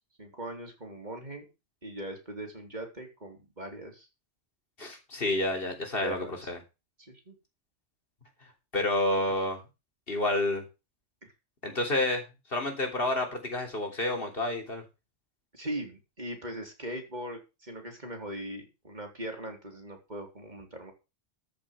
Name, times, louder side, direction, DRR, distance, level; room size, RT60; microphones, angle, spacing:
voice 1, 0.2-1.5 1.8-4.1 6.0-6.3 7.0-7.4 11.2-11.3 15.5-20.9, right 1 dB, 40° right, 3 dB, 3.9 m, -40 dB
voice 2, 4.8-6.6 8.7-9.6 10.1-10.6 11.6-12.2 12.5-14.8, left 1 dB, 50° left, 3 dB, 3.5 m, -29 dB
13.5 x 6.2 x 6.8 m, 0.28 s
omnidirectional pair, 1.2 m